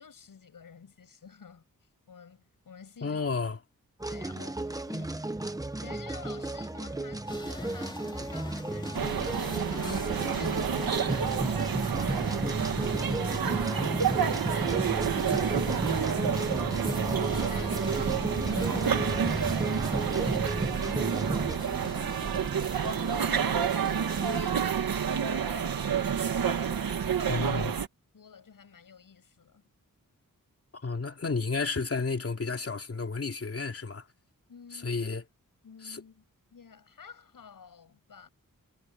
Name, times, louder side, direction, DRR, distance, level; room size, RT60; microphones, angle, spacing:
voice 1, 0.0-1.6 2.1-3.2 4.1-5.3 5.8-27.5 28.1-29.6 34.5-35.1 35.6-36.2 36.5-38.3, left 6 dB, 75° left, 7.4 m, -51 dB
voice 2, 3.0-3.6 27.2-27.7 30.8-34.0 34.7-35.2 35.8-36.0, left 4 dB, 45° left, 2.9 m, -32 dB
sound 1, 4.0-21.6, right 2 dB, 10° right, 1.1 m, -33 dB
sound 2, 7.3-24.6, left 2 dB, 15° left, 3.1 m, -43 dB
sound 3, 8.9-27.9, right 7 dB, 90° right, 1.8 m, -29 dB
wide cardioid pair, 175°, 34 cm